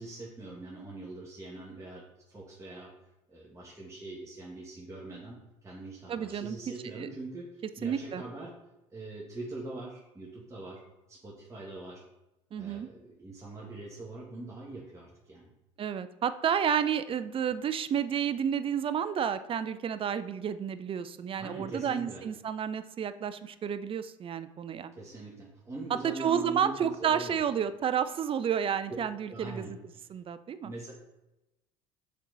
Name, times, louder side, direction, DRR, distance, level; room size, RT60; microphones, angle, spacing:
voice 1, 0.0-2.9 3.3-8.5 8.9-10.8 11.1-12.0 12.6-15.5 21.4-22.2 24.9-27.4 29.3-29.7 30.6-30.9, right 2 dB, 20° right, -4 dB, 1.7 m, -43 dB
voice 2, 6.1-6.6 6.9-7.1 7.8-8.2 12.5-12.9 15.8-24.9 26.0-29.8 30.1-30.7, right 8 dB, 35° right, 13 dB, 0.5 m, -31 dB
6.7 x 4.5 x 4.0 m, 0.95 s
hypercardioid pair, 65°, 17 cm